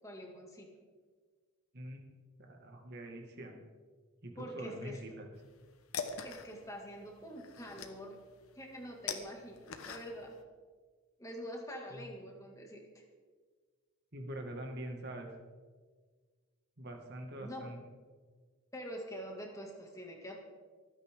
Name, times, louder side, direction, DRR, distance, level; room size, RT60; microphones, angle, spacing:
voice 1, 0.0-0.7 4.3-5.0 6.2-8.2 8.6-10.3 11.2-13.0 17.4-17.7 18.7-20.3, equal, 15° left, 0 dB, 2.4 m, -45 dB
voice 2, 2.4-3.5 4.2-5.3 11.9-12.1 14.1-15.3 16.8-17.8, right 1 dB, 50° right, 3 dB, 2.1 m, -44 dB
sound 1, 5.4-10.4, left 5 dB, 90° left, 1.3 m, -44 dB
25.5 x 9.8 x 3.8 m, 1.5 s
head